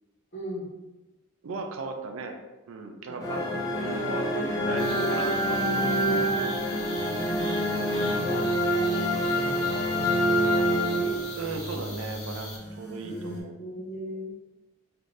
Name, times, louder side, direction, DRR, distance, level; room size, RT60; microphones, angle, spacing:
voice 1, 0.3-0.7 3.0-4.4 4.7-5.1 7.1-11.2 12.6-12.8 13.0-14.3, equal, 55° left, -6 dB, 1.0 m, -40 dB
voice 2, 1.4-2.4 2.7-6.5 7.9-8.4 11.4-13.5, right 3 dB, 70° right, 5 dB, 0.4 m, -37 dB
sound 1, 3.2-11.6, equal, 15° left, 0.4 m, -26 dB
sound 2, 4.8-12.6, left 2 dB, 85° left, 1.2 m, -43 dB
sound 3, 6.9-13.4, equal, 15° right, 1.0 m, -42 dB
3.2 x 2.6 x 2.5 m, 1.1 s
head